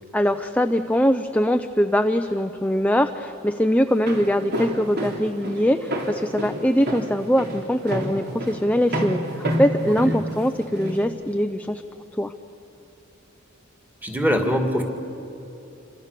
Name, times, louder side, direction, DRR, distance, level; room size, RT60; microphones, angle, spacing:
voice 1, 0.1-11.8 12.2-12.3, equal, 5° left, 7 dB, 0.6 m, -22 dB
Walk footsteps, 3.9-11.0, equal, 55° right, 3.5 m, -29 dB
voice 2, 14.0-14.8, equal, 10° right, 4 dB, 2.4 m, -22 dB
28.5 x 25.5 x 6.8 m, 2.9 s
head